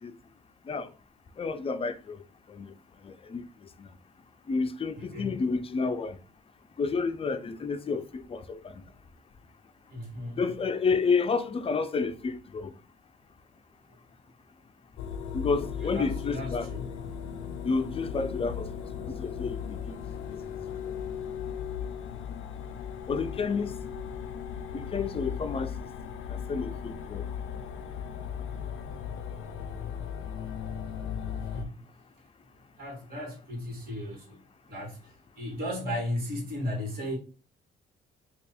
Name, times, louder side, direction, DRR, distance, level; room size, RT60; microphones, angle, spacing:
voice 1, 1.4-2.2 2.5-2.7 3.0-3.4 3.8-3.9 4.5-6.2 6.8-8.7 10.4-12.7 15.3-16.7 17.6-18.7 19.0-20.0 23.1-23.7 24.7-25.7 26.3-27.3, left 4 dB, 30° left, 0.5 m, -30 dB
voice 2, 9.9-10.4 15.8-16.9 31.5-31.7 32.8-34.4 34.7-37.2, left 1 dB, 50° right, 1.8 m, -35 dB
sound 1, 15.0-31.7, left 8 dB, 80° left, 0.5 m, -37 dB
3.3 x 2.4 x 4.2 m
cardioid pair, 90°, 20 cm